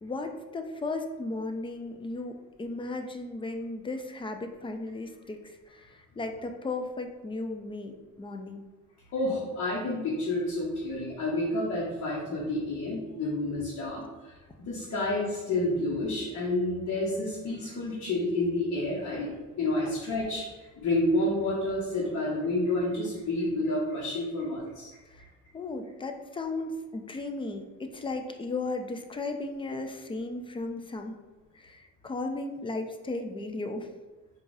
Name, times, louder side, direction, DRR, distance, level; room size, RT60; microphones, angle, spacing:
voice 1, 0.0-8.7 25.1-25.2 25.5-31.2 31.5-33.9, left 2 dB, 15° left, 5 dB, 0.4 m, -35 dB
voice 2, 9.1-14.3 14.7-19.3 19.6-20.5 20.8-24.9, left 1 dB, 65° left, -5 dB, 1.0 m, -29 dB
4.6 x 2.4 x 2.6 m, 1.2 s
cardioid pair, 90°, 30 cm